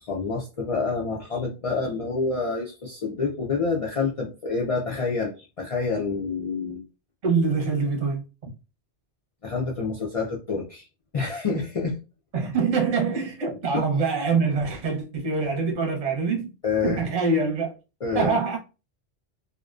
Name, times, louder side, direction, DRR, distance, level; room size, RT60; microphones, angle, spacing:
voice 1, 0.0-6.8 9.4-10.9 11.1-12.0 13.7-13.8 16.6-17.0 18.0-18.4, left 4 dB, 55° left, 0.3 m, -27 dB
voice 2, 7.2-8.5 12.3-16.5 16.8-17.7 18.1-18.6, right 4 dB, 40° right, 0.7 m, -24 dB
2.5 x 2.1 x 2.4 m
omnidirectional pair, 1.1 m